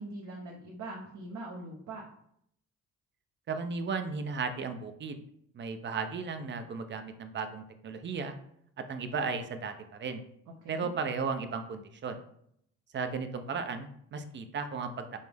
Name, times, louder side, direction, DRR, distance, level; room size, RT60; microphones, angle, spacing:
voice 1, 0.0-2.0 10.6-10.9, right 2 dB, 65° right, -2 dB, 0.8 m, -42 dB
voice 2, 3.5-5.2 5.5-8.3 8.8-10.2 10.7-12.2 12.9-15.2, right 5 dB, 40° right, 8 dB, 0.5 m, -35 dB
5.3 x 2.0 x 3.3 m, 0.71 s
cardioid pair, 90°, 30 cm